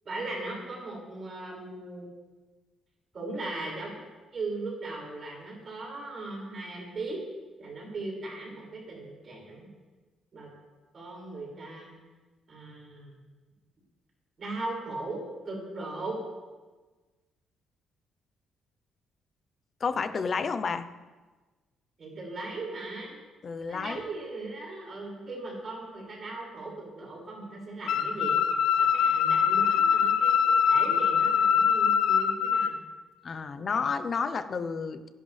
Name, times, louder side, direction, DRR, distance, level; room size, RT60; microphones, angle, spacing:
voice 1, 0.0-2.1 3.1-4.0 4.3-7.2 7.6-9.7 10.3-10.5 10.9-11.9 12.5-13.2 14.4-15.2 15.4-16.2 22.0-23.2 23.7-28.4 28.8-30.3 30.6-32.8 33.6-33.8, right 2 dB, 40° right, -3 dB, 6.4 m, -38 dB
voice 2, 19.8-20.9 23.4-24.0 33.2-35.1, left 5 dB, 40° left, 11 dB, 0.9 m, -30 dB
sound 1, 27.9-32.7, left 7 dB, 85° left, 0.9 m, -23 dB
27.0 x 11.0 x 3.5 m, 1.3 s
cardioid pair, 125°, 0 cm